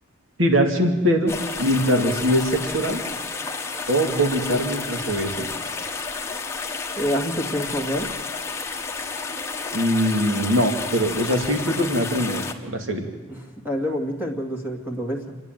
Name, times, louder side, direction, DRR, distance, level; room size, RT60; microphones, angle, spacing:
voice 1, 0.4-1.3 1.6-3.0 3.9-5.5 9.7-13.1, equal, 65° right, 4 dB, 2.5 m, -22 dB
sound 1, 1.3-12.5, left 4 dB, 15° left, 1.3 m, -31 dB
voice 2, 7.0-8.1 13.3-13.4 13.6-15.4, equal, 10° right, 2 dB, 2.1 m, -27 dB
28.0 x 10.5 x 9.1 m, 1.4 s
head